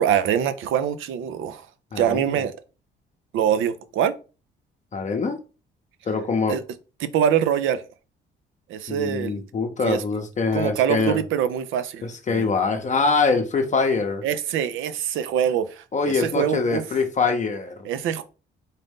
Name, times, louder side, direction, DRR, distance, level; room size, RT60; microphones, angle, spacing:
voice 1, 0.0-1.7 2.0-2.6 3.3-4.1 6.5-6.6 7.0-7.8 8.7-9.4 9.8-10.0 10.5-12.0 12.3-12.5 14.2-16.8 17.8-18.2, right 9 dB, 80° right, 0.5 m, -24 dB
voice 2, 1.9-2.3 4.9-5.4 6.1-6.6 8.9-11.2 12.0-14.2 15.9-17.9, left 4 dB, 35° left, 0.6 m, -24 dB
4.0 x 2.6 x 3.6 m
cardioid pair, 90°, 20 cm